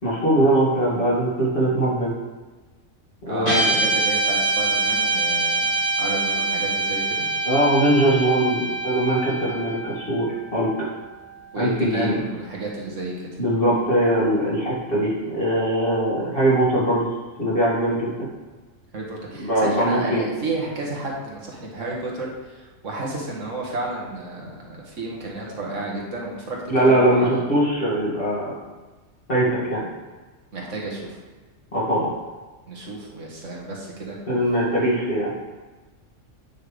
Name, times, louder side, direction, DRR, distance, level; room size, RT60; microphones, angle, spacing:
voice 1, 0.0-2.1 3.3-3.7 7.4-10.7 11.6-12.2 13.4-17.1 17.4-18.1 19.4-20.2 26.7-28.5 29.3-29.8 31.7-32.1 34.3-35.3, right 1 dB, 45° left, -7 dB, 2.6 m, -21 dB
voice 2, 3.3-5.7 6.0-7.3 11.5-13.4 18.9-27.4 30.5-31.2 32.7-34.2, right 2 dB, 85° right, -2 dB, 1.8 m, -31 dB
Guitar, 3.4-11.9, right 2 dB, 70° left, 3.2 m, -25 dB
8.9 x 5.5 x 3.4 m, 1.3 s
omnidirectional pair, 1.3 m